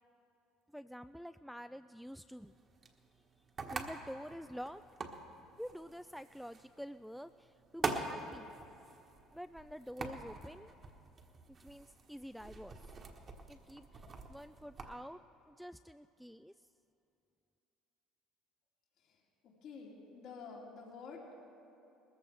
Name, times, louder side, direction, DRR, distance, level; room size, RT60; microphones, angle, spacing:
voice 1, 0.7-2.6 3.7-4.8 5.6-8.5 9.3-10.7 11.6-12.8 13.5-15.2 15.5-16.5, equal, ahead, 10 dB, 0.3 m, -48 dB
sound 1, 2.4-14.9, right 4 dB, 40° right, 1.4 m, -45 dB
voice 2, 19.4-21.4, left 4 dB, 65° left, -2 dB, 2.6 m, -49 dB
20.0 x 14.5 x 3.4 m, 2.9 s
hypercardioid pair, 70°, 0 cm